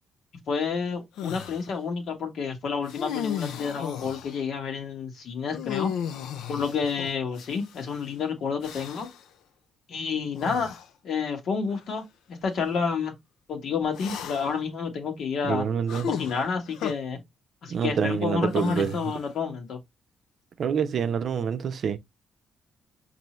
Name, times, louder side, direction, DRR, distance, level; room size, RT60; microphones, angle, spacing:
voice 1, 0.5-5.9 6.5-9.1 9.9-13.1 13.5-15.7 16.1-17.2 17.6-19.8, left 5 dB, 65° left, 1.2 m, -29 dB
sound 1, 1.2-1.6 2.9-4.4 5.5-7.9 8.6-9.2 10.3-10.9 11.7-11.8 13.9-14.6 15.9-16.9 18.5-19.3, left 8 dB, 85° left, 0.4 m, -35 dB
voice 2, 15.4-16.1 17.7-18.9 20.6-22.0, right 7 dB, 60° right, 0.5 m, -26 dB
5.4 x 2.6 x 3.0 m
cardioid pair, 90°, 0 cm